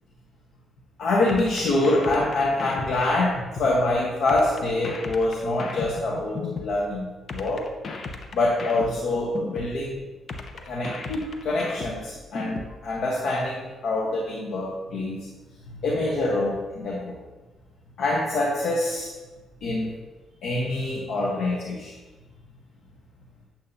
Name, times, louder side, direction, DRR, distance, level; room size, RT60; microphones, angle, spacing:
voice 1, 1.0-7.7 8.3-10.0 10.7-15.3 15.8-17.2 18.0-19.1 19.6-19.9 20.4-21.9, left 2 dB, 70° left, -3 dB, 1.2 m, -25 dB
sound 1, 1.3-3.8 4.3-6.8 7.3-9.8 10.3-12.8, left 3 dB, 50° left, 0.9 m, -35 dB
8.9 x 7.4 x 2.8 m, 1.2 s
cardioid pair, 90°, 0 cm